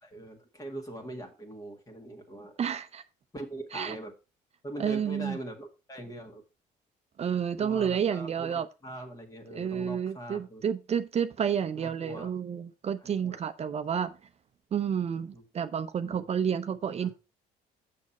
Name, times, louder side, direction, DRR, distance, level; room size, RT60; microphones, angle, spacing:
voice 1, 0.0-2.5 3.3-4.1 4.6-6.4 7.6-10.6 11.8-12.3 13.0-13.4 15.3-15.4 16.0-16.3 17.0-17.1, right 1 dB, 20° left, 1.9 m, -42 dB
voice 2, 2.6-3.0 3.7-4.0 4.8-5.4 7.2-8.7 9.5-14.1 14.7-17.1, right 8 dB, 40° right, 0.7 m, -30 dB
7.6 x 6.3 x 4.2 m
cardioid pair, 110°, 17 cm